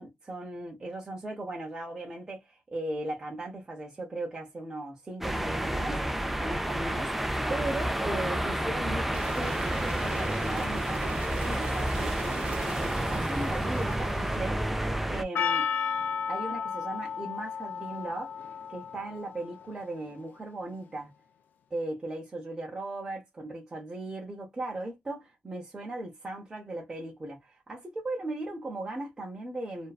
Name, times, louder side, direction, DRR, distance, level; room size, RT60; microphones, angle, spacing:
voice 1, 0.0-6.1 6.3-11.0 11.5-14.6 15.1-15.7 16.3-18.3 18.7-21.1 21.7-29.9, right 2 dB, 20° right, 0.8 m, -37 dB
sound 1, 5.2-15.2, right 1 dB, 5° right, 0.4 m, -30 dB
sound 2, 9.1-14.5, right 5 dB, 55° right, 0.8 m, -40 dB
Percussion, 15.3-19.9, left 7 dB, 65° left, 0.5 m, -33 dB
2.5 x 2.2 x 2.3 m
cardioid pair, 115°, 3 cm